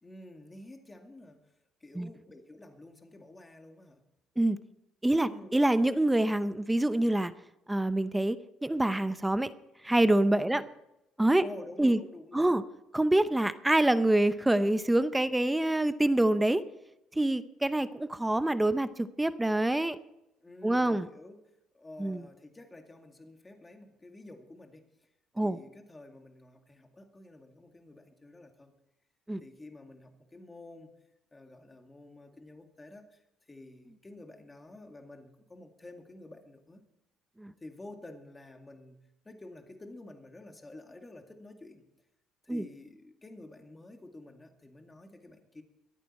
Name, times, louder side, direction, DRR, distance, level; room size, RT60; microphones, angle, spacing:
voice 1, 0.0-1.5 1.8-4.0 5.2-5.5 10.5-10.7 11.4-12.5 20.4-24.9 25.4-28.7 29.4-30.9 31.3-33.2 33.5-36.8 37.6-39.0 39.2-41.8 42.4-45.6, left 2 dB, 15° left, 5 dB, 2.1 m, -50 dB
voice 2, 5.0-7.3 7.7-8.4 8.6-9.5 9.8-10.6 11.2-11.4 11.8-12.0 12.3-12.6 12.9-16.6 17.2-20.0 20.6-21.1 22.0-22.2 25.4-25.6 29.3-29.4 37.4-37.5 42.5-42.7, right 1 dB, 10° right, 13 dB, 0.6 m, -26 dB
23.0 x 9.1 x 4.3 m, 0.89 s
cardioid pair, 100°, 0 cm